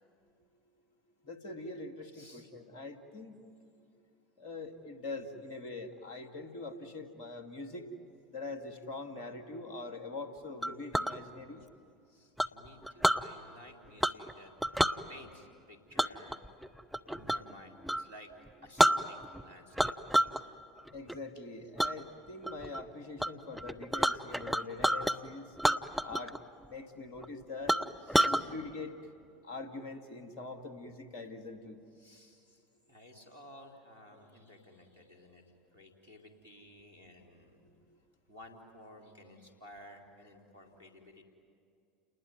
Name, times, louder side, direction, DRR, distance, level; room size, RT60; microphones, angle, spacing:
voice 1, 1.2-3.3 4.4-7.9 8.3-11.6 20.9-25.5 26.0-26.4 26.7-27.7 28.2-28.9 29.4-31.8, left 3 dB, 55° left, 7 dB, 2.3 m, -43 dB
voice 2, 2.1-2.5 12.1-14.5 15.1-16.4 17.1-18.3 18.6-19.9 20.3-20.4 28.1-28.5 32.0-35.4 35.7-37.6 38.3-41.2, left 1 dB, 80° right, 2 dB, 3.7 m, -54 dB
Chink clink, 10.6-11.1 12.4-13.2 14.0-14.3 14.6-15.0 16.0-17.5 17.8-18.0 18.5-18.6 18.8-19.4 19.8-20.4 20.8-21.1 21.8-21.9 22.4-22.8 23.2-23.3 23.5-25.2 25.6-26.4 26.6-26.7 27.2-27.3 27.7-28.4, right 1 dB, ahead, 0.8 m, -29 dB
29.5 x 20.0 x 9.4 m, 2.5 s
figure-of-eight pair, 70°, 0 cm